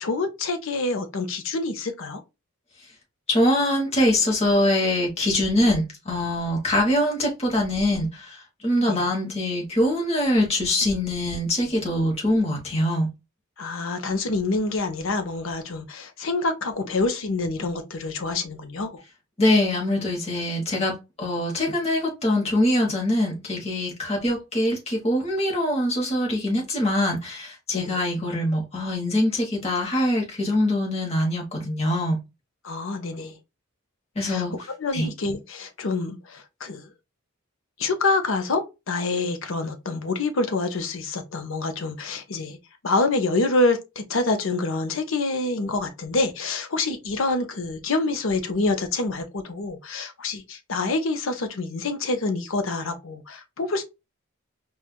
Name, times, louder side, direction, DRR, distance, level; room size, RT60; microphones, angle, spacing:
voice 1, 0.0-2.2 8.9-9.0 13.6-19.0 27.7-28.0 32.6-33.3 34.2-34.4 34.8-36.9 37.8-42.6 42.8-53.8, left 3 dB, 65° left, 0.7 m, -26 dB
voice 2, 3.3-13.1 19.4-32.2 34.1-34.5 34.9-35.1, left 1 dB, 30° left, 1.2 m, -23 dB
4.3 x 2.4 x 2.2 m
head